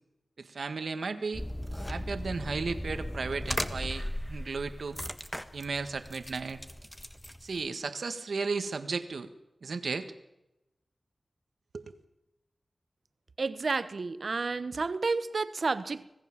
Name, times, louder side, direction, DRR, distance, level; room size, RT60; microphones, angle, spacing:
voice 1, 0.4-1.4 1.9-5.0 5.5-6.6 7.4-9.3 9.6-10.1 11.7-11.9, right 4 dB, 90° right, 1.7 m, -34 dB
sound 1, 1.3-7.7, equal, 10° left, 1.6 m, -37 dB
voice 2, 13.4-16.1, right 4 dB, 70° right, 1.0 m, -31 dB
26.0 x 18.0 x 7.4 m
wide cardioid pair, 65°, 0 cm